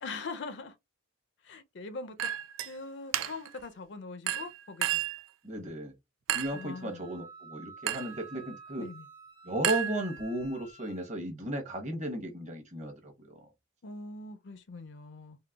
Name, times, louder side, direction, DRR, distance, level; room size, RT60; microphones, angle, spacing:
voice 1, 0.0-0.7 1.4-2.3 2.6-5.0 6.5-7.1 8.8-9.1 13.8-15.4, left 3 dB, 55° left, 0.5 m, -42 dB
Chink clink, 2.2-2.7 3.1-3.6 4.3-5.2 6.3-6.7 7.9-8.2 9.6-10.4, right 10 dB, 70° right, 0.3 m, -32 dB
voice 2, 5.4-5.9 6.3-8.9 9.4-13.4, right 1 dB, 35° right, 0.8 m, -35 dB
Wind instrument woodwind instrument, 6.8-11.1, right 4 dB, 50° right, 1.1 m, -51 dB
3.8 x 2.1 x 2.3 m
head